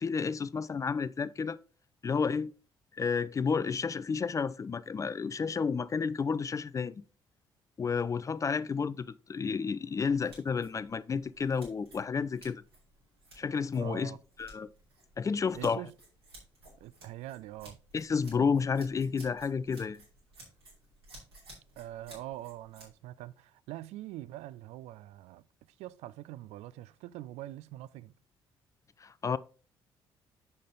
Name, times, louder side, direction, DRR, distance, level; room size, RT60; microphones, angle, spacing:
voice 1, 0.0-1.6 2.0-2.5 2.9-7.0 7.8-12.6 13.4-14.1 14.4-14.7 15.2-15.8 17.9-20.0 29.0-29.4, left 5 dB, 25° left, 0.4 m, -31 dB
sound 1, 10.0-22.9, right 1 dB, 80° right, 2.7 m, -56 dB
voice 2, 13.8-14.2 15.5-15.9 16.8-17.8 21.8-25.4 25.8-28.1, right 15 dB, 55° right, 0.4 m, -44 dB
6.6 x 5.4 x 3.9 m
figure-of-eight pair, 45°, 13 cm